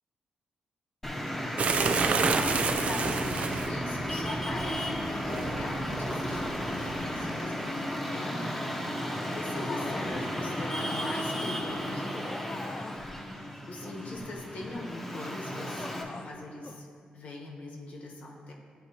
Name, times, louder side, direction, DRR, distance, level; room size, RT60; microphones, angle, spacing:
Traffic noise roadway noise, 1.0-16.0, equal, 10° left, 0.8 m, -34 dB
sound 1, 1.6-7.2, right 4 dB, 50° right, 0.4 m, -31 dB
voice 1, 2.2-8.5 9.3-12.2 13.6-16.9 17.1-18.5, left 2 dB, 65° left, -1 dB, 1.2 m, -40 dB
sound 2, 9.7-10.2 10.8-13.1 13.8-14.9 15.5-16.4 16.6-16.8, left 3 dB, 30° left, 0.3 m, -43 dB
10.0 x 4.2 x 2.8 m, 2.3 s
cardioid pair, 110°, 3 cm